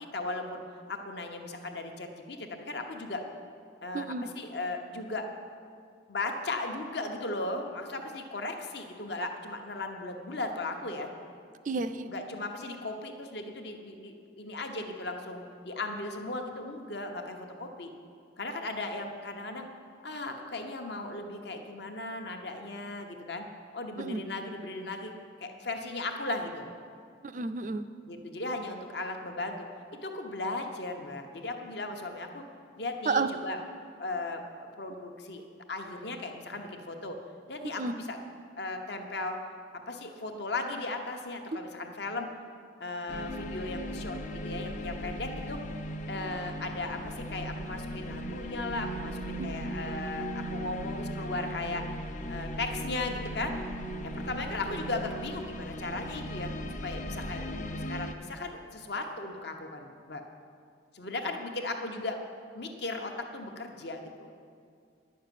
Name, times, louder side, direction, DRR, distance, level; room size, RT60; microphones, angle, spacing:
voice 1, 0.1-3.2 3.8-5.3 6.1-11.1 12.1-17.9 18.4-19.7 20.0-23.5 23.7-25.1 25.4-26.7 28.1-29.7 30.0-32.4 32.8-33.6 34.0-37.2 37.5-38.2 38.6-39.4 39.9-42.3 42.8-45.6 46.1-51.8 52.3-53.6 54.0-56.5 56.8-60.2 60.9-62.2 62.5-64.3, left 2 dB, 60° left, 4 dB, 1.0 m, -37 dB
voice 2, 3.9-4.3 11.7-12.1 24.0-24.2 27.2-27.9 33.1-33.3 37.8-38.0 41.5-41.6 49.4-49.5, right 3 dB, 40° right, 10 dB, 0.4 m, -31 dB
sound 1, 43.1-58.1, equal, 40° left, 0.6 m, -37 dB
10.5 x 6.6 x 9.1 m, 2.2 s
head